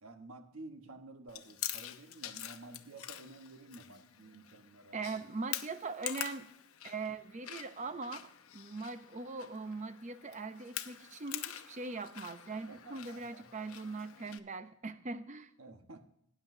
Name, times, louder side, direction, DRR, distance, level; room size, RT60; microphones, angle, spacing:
voice 1, 0.0-5.2 12.7-13.4 15.6-16.0, right 2 dB, 80° right, 6 dB, 1.3 m, -52 dB
Chewing mastication, 1.3-14.4, left 12 dB, 85° left, 0.8 m, -46 dB
voice 2, 4.9-6.5 6.8-15.5, right 3 dB, 35° right, 11 dB, 0.7 m, -41 dB
18.0 x 10.0 x 2.7 m, 0.73 s
head